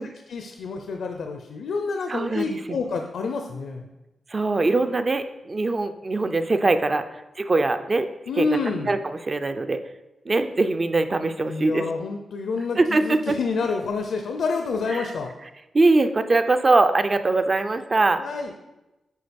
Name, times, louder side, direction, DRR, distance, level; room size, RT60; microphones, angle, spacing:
voice 1, 0.3-3.9 8.3-8.9 11.5-15.3 18.2-18.5, left 4 dB, 75° left, 4 dB, 0.6 m, -28 dB
voice 2, 2.1-2.6 4.3-7.0 7.4-8.1 8.4-9.8 10.3-11.9 12.8-13.4 14.9-15.1 15.7-18.2, right 3 dB, 25° right, 9 dB, 0.5 m, -22 dB
9.3 x 4.7 x 5.2 m, 1.0 s
wide cardioid pair, 160°, 0 cm